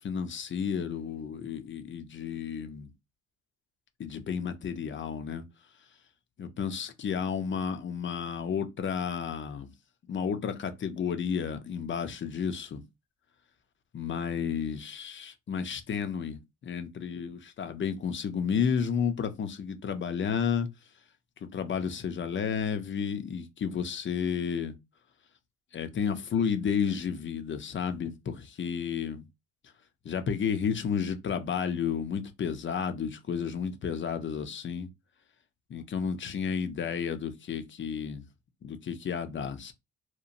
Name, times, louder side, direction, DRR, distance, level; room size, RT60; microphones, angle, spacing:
voice 1, 0.0-2.9 4.0-5.4 6.4-9.7 10.1-12.8 13.9-20.7 21.5-24.7 25.7-29.2 30.0-34.9 35.7-38.2 38.6-39.7, left 7 dB, 40° left, 0.5 m, -32 dB
2.9 x 2.1 x 2.5 m
cardioid pair, 90°, 30 cm